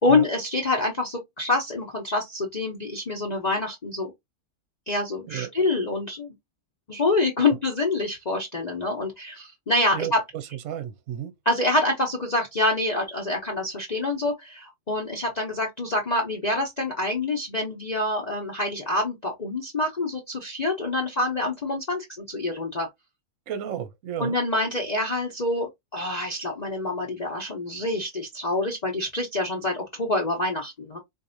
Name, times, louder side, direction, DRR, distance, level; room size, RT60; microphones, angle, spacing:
voice 1, 0.0-4.1 4.9-6.3 6.9-10.2 11.5-22.9 24.2-31.0, left 2 dB, 35° left, 0.9 m, -26 dB
voice 2, 9.9-11.3 23.5-24.4, right 10 dB, 60° right, 1.0 m, -33 dB
4.5 x 2.6 x 2.6 m
omnidirectional pair, 1.6 m